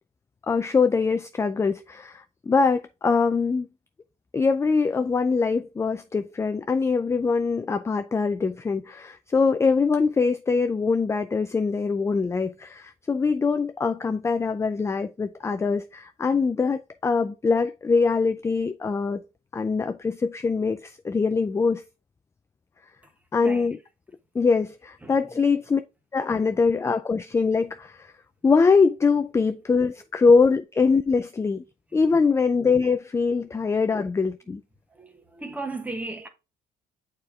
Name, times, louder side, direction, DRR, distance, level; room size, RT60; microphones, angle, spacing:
voice 1, 0.5-3.7 4.3-19.2 19.5-21.8 23.3-23.8 24.3-25.8 26.1-28.1 28.4-31.6 31.9-34.6, left 4 dB, 15° left, 0.4 m, -23 dB
voice 2, 23.4-23.8 25.0-25.5 26.2-26.6 30.0-30.1 31.9-32.3 33.3-33.8 34.4-34.5 34.9-36.3, right 2 dB, 10° right, 1.3 m, -38 dB
6.6 x 4.4 x 3.5 m
cardioid pair, 110°, 17 cm